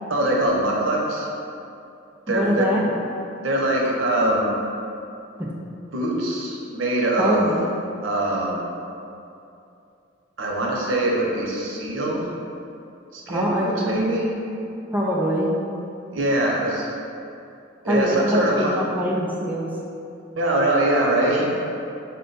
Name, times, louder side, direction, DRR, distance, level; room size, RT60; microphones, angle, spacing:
voice 1, 0.1-1.3 2.3-2.7 3.4-4.5 5.9-7.5 8.0-8.6 10.4-12.3 13.1-14.3 16.1-16.9 17.8-18.7 20.4-21.6, right 1 dB, 90° right, -2 dB, 0.7 m, -23 dB
voice 2, 2.3-2.9 5.4-5.5 7.2-7.6 13.3-13.8 14.9-15.6 17.9-19.7, equal, 10° right, -4 dB, 0.3 m, -23 dB
4.3 x 2.2 x 3.9 m, 2.7 s
head